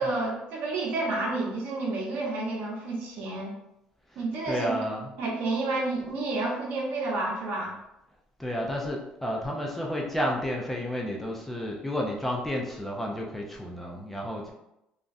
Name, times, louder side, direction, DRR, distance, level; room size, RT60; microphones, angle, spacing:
voice 1, 0.0-3.5 4.2-4.7 5.2-7.7, right 2 dB, 70° right, -1 dB, 0.8 m, -30 dB
voice 2, 4.5-5.1 8.4-14.5, equal, 5° left, -2 dB, 0.4 m, -31 dB
2.9 x 2.4 x 2.6 m, 0.85 s
cardioid pair, 135°, 3 cm